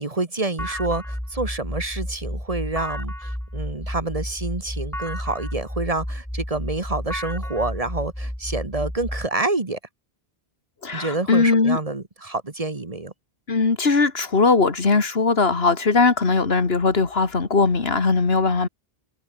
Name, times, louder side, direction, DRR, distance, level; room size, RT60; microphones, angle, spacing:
voice 1, 0.0-9.8 10.9-13.1, right 2 dB, 35° right, 1.6 m, -28 dB
sound 1, 0.6-9.3, equal, 5° left, 1.2 m, -31 dB
voice 2, 10.8-11.8 13.5-18.7, left 4 dB, 75° left, 2.2 m, -19 dB
omnidirectional pair, 1.0 m